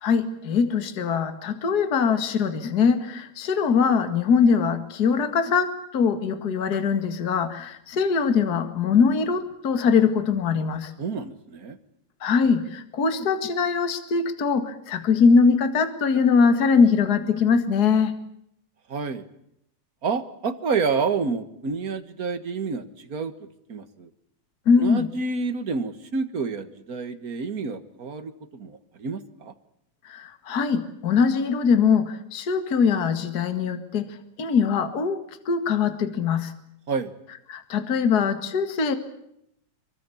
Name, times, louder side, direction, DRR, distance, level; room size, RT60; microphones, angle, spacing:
voice 1, 0.0-10.9 12.2-18.1 24.7-25.1 30.1-36.5 37.5-38.9, left 5 dB, 35° left, 9 dB, 2.1 m, -22 dB
voice 2, 11.0-11.8 18.9-19.3 20.0-24.1 24.8-29.5 36.9-37.1, right 5 dB, 40° right, 9 dB, 1.3 m, -29 dB
25.0 x 24.0 x 7.2 m, 0.76 s
omnidirectional pair, 3.6 m